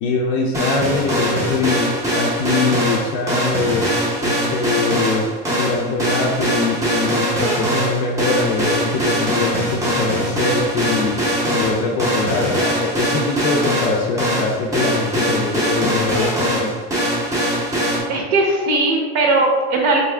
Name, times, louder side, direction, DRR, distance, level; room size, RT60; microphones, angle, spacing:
voice 1, 0.0-3.9 4.2-5.3 5.6-11.2 11.5-16.7, left 3 dB, 55° left, -1 dB, 0.5 m, -23 dB
sound 1, 0.5-18.0, equal, 10° right, 0.5 m, -21 dB
voice 2, 18.1-20.0, right 2 dB, 60° right, 0 dB, 0.7 m, -18 dB
3.5 x 2.7 x 3.2 m, 1.4 s
cardioid pair, 180°, 31 cm